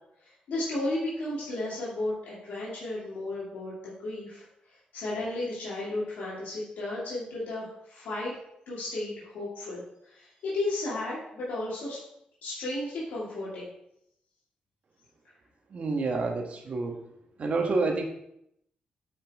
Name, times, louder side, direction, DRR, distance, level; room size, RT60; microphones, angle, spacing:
voice 1, 0.2-4.4 4.9-8.3 8.7-12.0 12.4-13.7, left 2 dB, 90° left, -8 dB, 2.6 m, -34 dB
voice 2, 15.7-17.0 17.4-18.0, right 3 dB, 50° right, 2 dB, 1.5 m, -28 dB
8.7 x 5.6 x 3.6 m, 0.76 s
cardioid pair, 100°, 3 cm